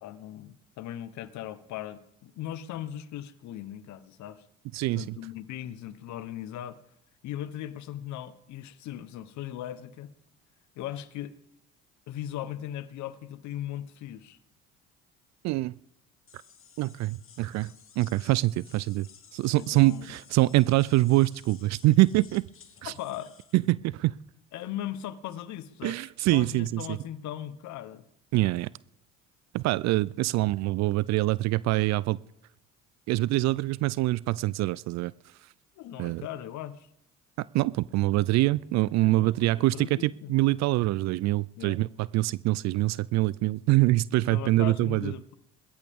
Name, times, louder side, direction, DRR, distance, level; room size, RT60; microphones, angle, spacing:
voice 1, 0.0-4.4 4.9-6.8 7.2-10.1 10.7-11.3 12.1-14.4 19.5-20.1 22.8-23.3 24.5-28.0 35.8-36.9 39.0-40.3 41.6-41.9 44.3-45.3, left 12 dB, 65° left, 1.1 m, -38 dB
voice 2, 4.7-5.1 15.4-15.8 16.8-22.5 22.8-22.9 23.5-24.1 25.8-27.0 28.3-28.7 29.5-32.2 33.1-35.1 36.0-36.3 37.4-45.1, right 18 dB, 60° right, 0.4 m, -25 dB
sound 1, 16.3-23.7, left 7 dB, 45° left, 1.8 m, -55 dB
21.5 x 13.5 x 3.6 m
hypercardioid pair, 70°, 31 cm